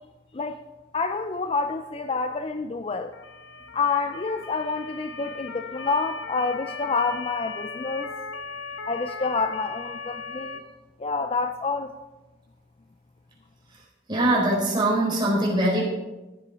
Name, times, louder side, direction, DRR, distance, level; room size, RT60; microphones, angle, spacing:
voice 1, 0.9-3.1 3.7-8.1 8.9-10.6 11.0-11.9, left 4 dB, 30° left, 7 dB, 0.4 m, -28 dB
Motor vehicle (road) / Siren, 3.1-10.6, left 4 dB, 80° left, 0.9 m, -38 dB
voice 2, 14.1-15.8, right 1 dB, 25° right, -4 dB, 4.1 m, -22 dB
15.0 x 8.0 x 4.8 m, 1.1 s
head